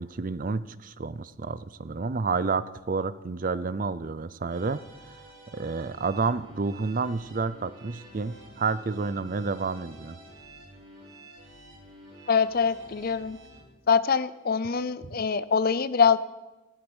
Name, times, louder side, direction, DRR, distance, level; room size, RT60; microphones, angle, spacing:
voice 1, 0.0-4.8 5.1-5.2 5.5-10.2, right 4 dB, 40° right, 16 dB, 0.5 m, -30 dB
sound 1, 4.5-13.6, right 1 dB, 55° right, 5.4 m, -50 dB
voice 2, 12.3-13.4 13.9-16.2, left 6 dB, 45° left, 16 dB, 0.5 m, -24 dB
14.0 x 13.5 x 6.3 m, 1.1 s
head